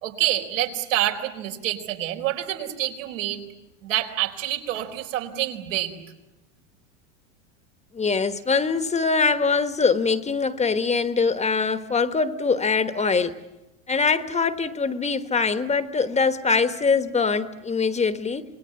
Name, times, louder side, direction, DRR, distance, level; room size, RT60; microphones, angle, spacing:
voice 1, 0.0-3.4 3.8-6.0, right 13 dB, 85° right, 4.4 m, -27 dB
voice 2, 7.9-13.4 13.9-18.4, left 4 dB, 20° left, 1.2 m, -23 dB
27.0 x 20.0 x 9.7 m
supercardioid pair, 120°, 37 cm